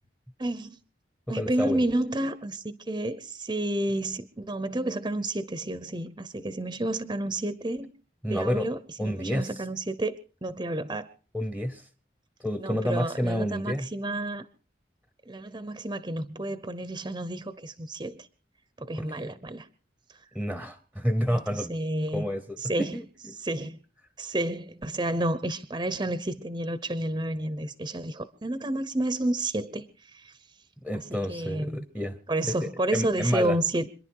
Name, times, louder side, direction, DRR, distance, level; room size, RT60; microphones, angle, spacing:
voice 1, 0.4-0.8 1.3-7.9 8.3-11.1 12.6-14.4 15.3-18.3 18.8-19.7 21.3-22.2 22.6-23.0 23.4-23.8 24.2-29.9 30.1-30.3 30.9-31.8 32.3-33.9, right 1 dB, 25° right, 0.8 m, -30 dB
voice 2, 1.3-1.8 8.2-8.7 9.0-9.5 11.3-11.8 12.4-13.9 19.0-19.1 20.3-21.7 22.1-23.4 30.8-32.2 32.5-33.6, equal, 5° left, 1.0 m, -29 dB
26.5 x 10.5 x 4.7 m
head